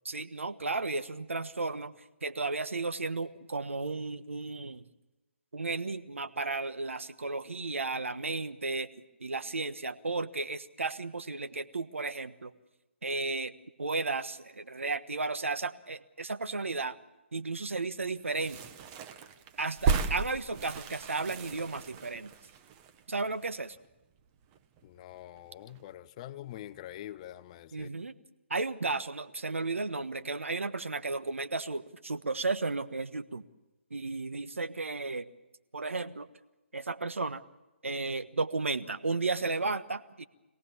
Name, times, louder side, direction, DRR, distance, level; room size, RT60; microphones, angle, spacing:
voice 1, 0.0-1.9 2.2-4.8 5.5-8.9 9.2-12.5 13.0-17.0 17.3-18.6 19.6-22.3 23.1-23.8 27.7-28.1 28.5-33.4 33.9-35.3 35.7-36.3 36.7-37.4 37.8-40.2, right 3 dB, 85° right, 11 dB, 1.3 m, -34 dB
sound 1, 18.3-23.9 24.2-24.3 24.4-25.4 25.7-25.9, right 5 dB, 25° right, 1.3 m, -35 dB
voice 2, 24.8-27.9, left 13 dB, 30° left, 15 dB, 0.8 m, -45 dB
26.0 x 18.0 x 7.3 m, 1.0 s
hypercardioid pair, 150°, 7 cm